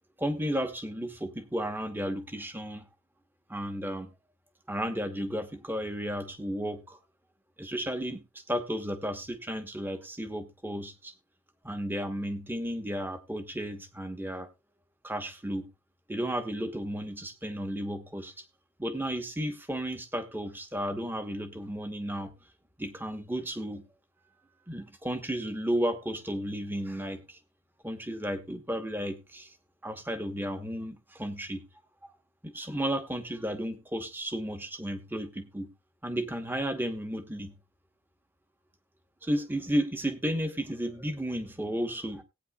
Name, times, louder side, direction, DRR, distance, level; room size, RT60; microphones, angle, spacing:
voice 1, 0.2-2.9 3.5-4.1 4.7-7.0 7.6-11.1 11.6-14.5 15.0-15.7 16.1-18.4 18.8-22.3 22.8-23.8 24.7-27.4 27.8-29.5 29.8-31.6 32.4-35.7 36.0-37.5 39.2-42.2, equal, 10° right, 7 dB, 1.0 m, -33 dB
18.5 x 9.1 x 2.3 m, 0.23 s
head